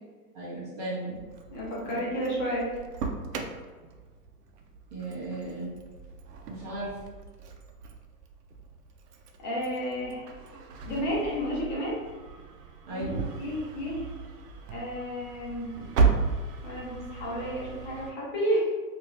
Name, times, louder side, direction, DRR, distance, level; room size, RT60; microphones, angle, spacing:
voice 1, 0.3-1.2 1.8-2.0 4.9-5.7 6.5-6.9 12.9-13.3, right 1 dB, 25° right, -7 dB, 0.6 m, -36 dB
Engine starting, 1.1-18.1, right 4 dB, 85° right, 0.6 m, -35 dB
voice 2, 1.5-2.7 9.4-10.3 10.8-12.0 12.9-14.0 14.7-15.9 16.6-18.7, equal, 30° left, -5 dB, 0.7 m, -31 dB
2.7 x 2.6 x 3.1 m, 1.4 s
hypercardioid pair, 155°, 46 cm